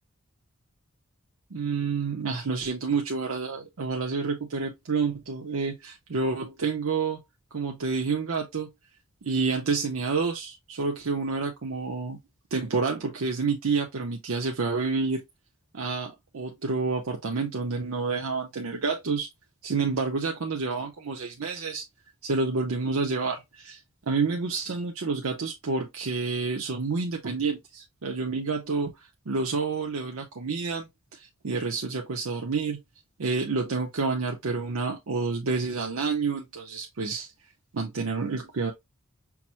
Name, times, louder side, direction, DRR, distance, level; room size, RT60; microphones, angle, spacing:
voice 1, 1.5-7.2 7.5-8.7 9.2-12.2 12.5-15.2 15.7-19.3 19.6-21.8 22.2-23.8 24.1-28.9 29.3-30.9 31.4-32.8 33.2-37.3 37.7-38.7, right 4 dB, 75° right, 0.7 m, -29 dB
5.8 x 2.0 x 2.9 m
head